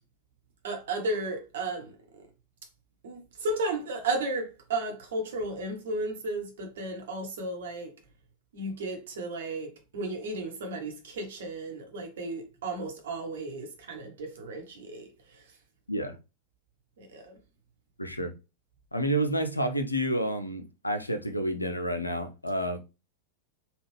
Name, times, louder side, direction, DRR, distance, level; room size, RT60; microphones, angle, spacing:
voice 1, 0.6-2.2 3.0-7.9 8.5-15.1 17.0-17.4, right 2 dB, 60° right, 1.0 m, -34 dB
voice 2, 18.0-18.3 18.9-22.8, right 1 dB, 85° left, 0.5 m, -29 dB
3.5 x 2.4 x 3.3 m
figure-of-eight pair, 90°, 0 cm